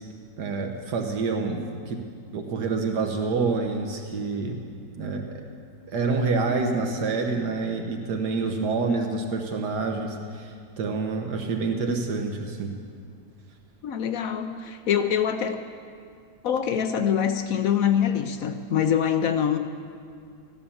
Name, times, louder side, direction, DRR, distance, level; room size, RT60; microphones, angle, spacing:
voice 1, 0.4-2.0 2.3-4.5 4.9-5.4 5.9-12.7, right 4 dB, 75° right, 3 dB, 1.6 m, -27 dB
voice 2, 13.8-15.6 16.4-19.6, left 8 dB, 65° left, 8 dB, 1.0 m, -24 dB
14.5 x 11.0 x 7.1 m, 2.2 s
omnidirectional pair, 1.8 m